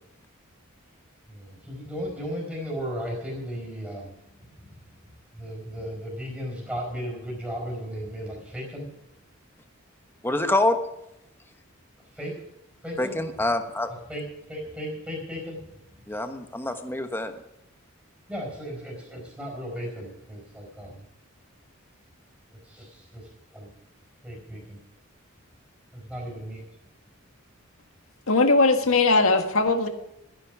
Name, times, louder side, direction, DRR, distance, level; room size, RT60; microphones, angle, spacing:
voice 1, 1.3-4.2 4.6-4.8 5.3-8.9 12.1-12.4 12.8-13.2 14.1-15.6 18.3-21.0 22.6-23.7 24.2-24.8 25.9-26.6, equal, 5° right, -2 dB, 4.5 m, -35 dB
voice 2, 10.2-10.8 13.0-13.9 16.1-17.3, left 2 dB, 10° left, 7 dB, 1.1 m, -26 dB
voice 3, 28.3-29.9, left 3 dB, 80° left, 6 dB, 1.7 m, -19 dB
14.0 x 10.5 x 6.1 m, 0.84 s
head